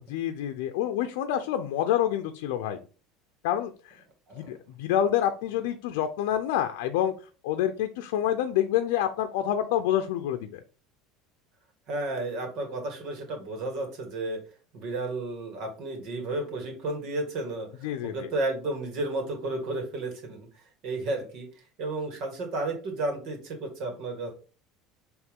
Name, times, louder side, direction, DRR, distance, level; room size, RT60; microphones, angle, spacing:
voice 1, 0.1-2.8 3.4-4.0 4.4-7.1 7.4-10.6 17.8-18.3, left 11 dB, 80° left, 6 dB, 0.6 m, -27 dB
voice 2, 11.9-14.4 14.7-20.5 20.8-21.5 21.8-24.3, right 2 dB, 50° right, 4 dB, 2.0 m, -32 dB
8.0 x 3.2 x 3.7 m, 0.37 s
cardioid pair, 170°, 0 cm